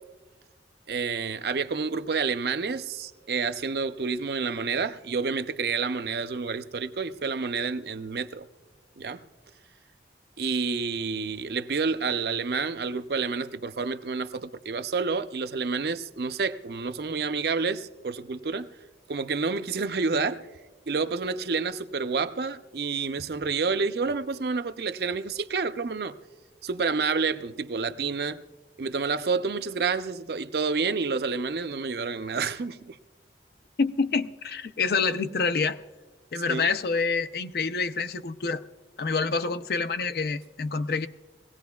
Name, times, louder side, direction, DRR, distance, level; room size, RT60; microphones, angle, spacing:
voice 1, 0.9-8.5 9.0-9.2 10.4-18.7 19.1-20.5 20.9-26.2 26.6-28.4 28.8-33.0 36.5-36.7, right 4 dB, 60° right, 0.5 m, -29 dB
voice 2, 33.8-35.8 36.3-38.6 39.0-41.1, left 4 dB, 60° left, 0.5 m, -27 dB
21.5 x 17.0 x 2.3 m
head